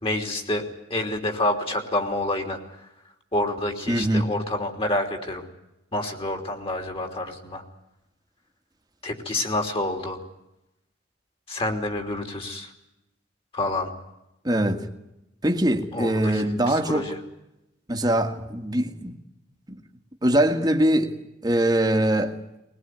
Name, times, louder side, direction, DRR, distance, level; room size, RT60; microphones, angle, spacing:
voice 1, 0.0-2.6 3.3-5.5 5.9-7.6 9.0-10.2 11.5-12.7 13.5-13.9 15.9-17.2, left 1 dB, 35° left, 3.2 m, -28 dB
voice 2, 3.9-4.2 14.4-14.9 15.4-17.1 17.9-19.2 19.7-19.8 20.2-21.1 21.4-22.4, right 1 dB, 25° right, 1.8 m, -22 dB
20.5 x 20.5 x 9.3 m
head